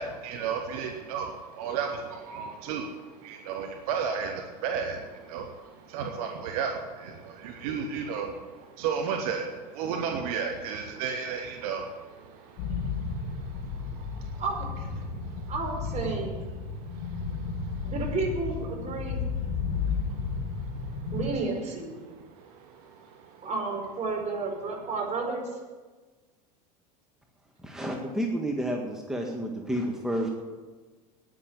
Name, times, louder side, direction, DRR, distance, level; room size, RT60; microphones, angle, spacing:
voice 1, 0.0-14.4 15.0-15.5 16.5-17.9 19.1-21.1 22.0-23.5, right 6 dB, 65° right, 5 dB, 1.5 m, -35 dB
sound 1, 12.6-21.3, left 5 dB, 50° left, 5.0 m, -33 dB
voice 2, 15.5-16.3 17.8-19.2 21.1-21.9 23.4-25.5, right 3 dB, 35° right, 0 dB, 5.1 m, -31 dB
voice 3, 27.6-30.3, equal, ahead, 1 dB, 1.8 m, -30 dB
10.0 x 9.9 x 9.3 m, 1.3 s
hypercardioid pair, 85°, 21 cm